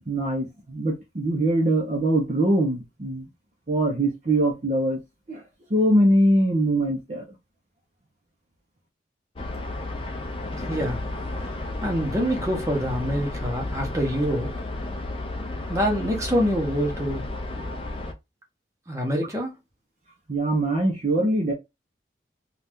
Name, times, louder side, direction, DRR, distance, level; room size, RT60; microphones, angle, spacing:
voice 1, 0.1-3.3 3.7-5.0 5.3-5.4 5.7-7.2 20.3-21.5, right 1 dB, 40° right, 0.6 m, -22 dB
sound 1, 9.4-18.1, left 2 dB, 30° left, 0.5 m, -32 dB
voice 2, 10.7-11.0 11.8-14.5 15.7-17.2 18.9-19.5, equal, 15° right, 0.9 m, -25 dB
2.7 x 2.3 x 3.4 m
head